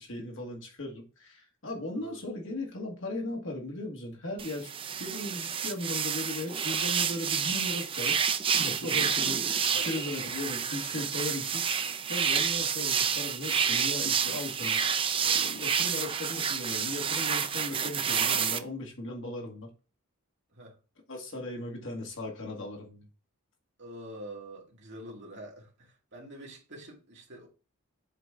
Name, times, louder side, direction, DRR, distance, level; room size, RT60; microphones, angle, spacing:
voice 1, 0.0-4.7 5.0-8.2 8.6-11.8 12.1-14.8 15.1-19.7 21.1-23.1, left 2 dB, 60° left, 1.9 m, -37 dB
sound 1, 4.4-18.6, right 7 dB, 25° right, 0.4 m, -29 dB
voice 2, 9.7-10.0 20.5-20.8 23.8-27.5, right 1 dB, 50° right, 2.3 m, -45 dB
7.6 x 4.1 x 3.7 m
head